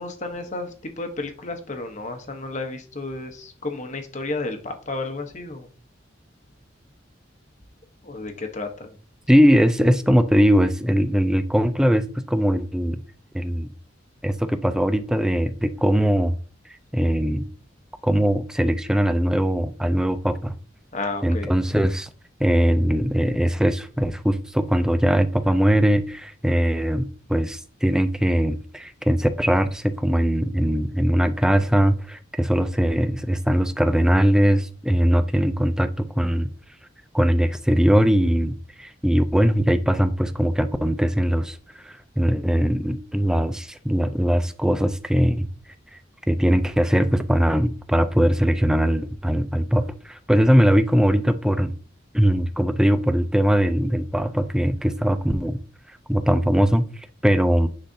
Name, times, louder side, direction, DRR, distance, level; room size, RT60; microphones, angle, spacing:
voice 1, 0.0-5.7 8.0-8.9 20.9-21.5, left 2 dB, 40° left, 1.0 m, -32 dB
voice 2, 9.3-13.0 13.3-13.7 14.2-16.4 16.9-17.5 18.0-20.5 21.2-22.1 22.4-36.5 37.1-45.5 46.3-51.7 52.1-55.6 56.1-56.9 57.2-57.7, equal, 5° right, 0.4 m, -20 dB
9.9 x 4.0 x 2.7 m
head